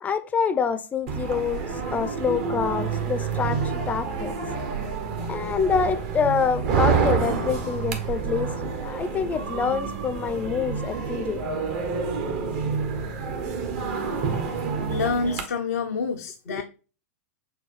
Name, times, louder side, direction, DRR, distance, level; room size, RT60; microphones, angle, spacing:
voice 1, 0.0-4.3 5.3-11.4 16.5-16.6, left 6 dB, 20° left, 0.4 m, -26 dB
sound 1, 1.1-15.4, right 5 dB, 50° right, 1.0 m, -28 dB
voice 2, 14.9-16.6, left 5 dB, 85° left, 0.5 m, -27 dB
6.4 x 2.3 x 3.1 m
hypercardioid pair, 110°, 8 cm